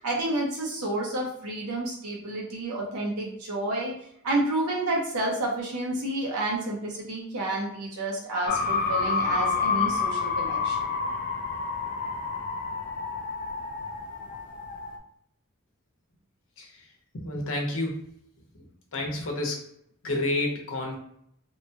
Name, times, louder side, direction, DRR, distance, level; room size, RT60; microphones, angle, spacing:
voice 1, 0.0-3.9 4.2-10.8, right 1 dB, 85° right, -2 dB, 0.7 m, -30 dB
sound 1, 8.5-15.0, left 4 dB, 35° left, 0.3 m, -29 dB
voice 2, 17.1-18.0 18.9-19.7 20.0-21.0, left 1 dB, 60° left, 0 dB, 0.7 m, -29 dB
2.9 x 2.2 x 2.7 m, 0.70 s
head